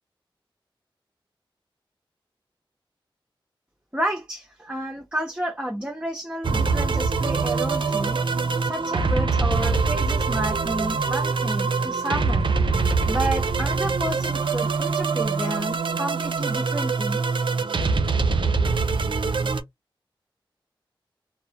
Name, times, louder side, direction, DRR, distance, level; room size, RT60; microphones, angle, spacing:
voice 1, 3.9-8.2 8.6-12.5 13.0-17.2, right 1 dB, 10° right, 0.7 m, -31 dB
sound 1, 6.4-19.6, right 4 dB, 65° right, 0.5 m, -24 dB
2.3 x 2.0 x 2.7 m
wide cardioid pair, 70°, 9 cm